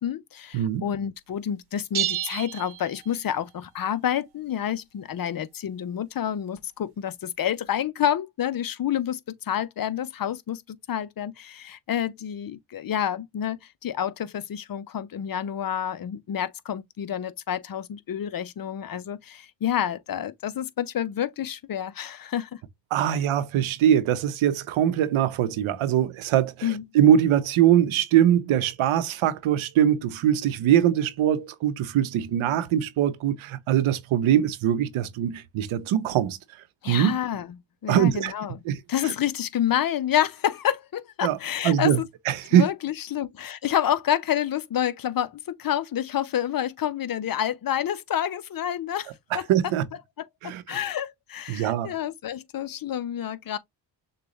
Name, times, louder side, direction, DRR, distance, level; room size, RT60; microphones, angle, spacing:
voice 1, 0.0-22.6 26.6-26.8 36.8-37.5 37.8-38.6 38.9-42.1 42.5-49.4 50.7-53.6, left 10 dB, 45° left, 0.6 m, -28 dB
sound 1, 1.9-3.5, right 13 dB, 50° right, 0.9 m, -31 dB
voice 2, 22.9-36.4 36.9-37.2 37.9-38.3 38.6-38.8 39.0-39.1 41.2-41.4 41.6-42.0 42.3-42.7 49.3-49.8 50.4-50.8 51.5-51.9, right 10 dB, 85° right, 0.8 m, -22 dB
6.6 x 2.3 x 3.0 m
cardioid pair, 70°, 47 cm